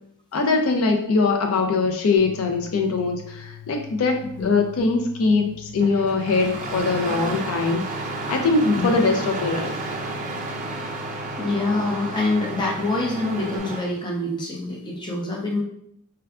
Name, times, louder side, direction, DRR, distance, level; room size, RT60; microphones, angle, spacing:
voice 1, 0.3-7.8 8.3-9.8, left 3 dB, 70° left, 4 dB, 0.4 m, -22 dB
sound 1, 2.2-13.6, left 13 dB, 90° left, 0.9 m, -43 dB
Engine starting, 5.8-13.9, right 3 dB, 35° right, 0.4 m, -32 dB
voice 2, 11.4-15.6, left 2 dB, 20° left, -1 dB, 0.6 m, -25 dB
4.5 x 2.2 x 2.3 m, 0.71 s
head